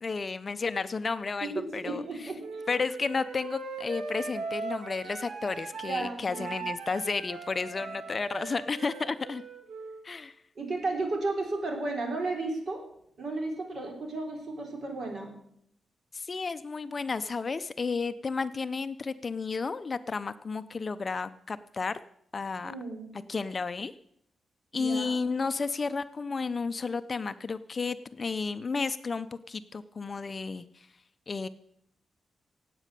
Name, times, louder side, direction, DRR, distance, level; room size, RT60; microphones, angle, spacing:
voice 1, 0.0-2.0 2.7-9.4 10.0-10.3 16.1-22.0 22.3-22.7 23.3-23.9 24.7-30.9 31.3-31.5, left 4 dB, 30° left, 12 dB, 0.5 m, -32 dB
voice 2, 1.4-2.6 5.9-6.6 10.6-12.8 13.2-15.3 22.6-23.1 24.7-25.1, right 2 dB, 55° right, 3 dB, 3.5 m, -33 dB
Wind instrument woodwind instrument, 2.4-6.0 6.3-10.1, right 4 dB, 85° right, 2.2 m, -40 dB
17.5 x 8.3 x 6.7 m, 0.72 s
wide cardioid pair, 155°, 0 cm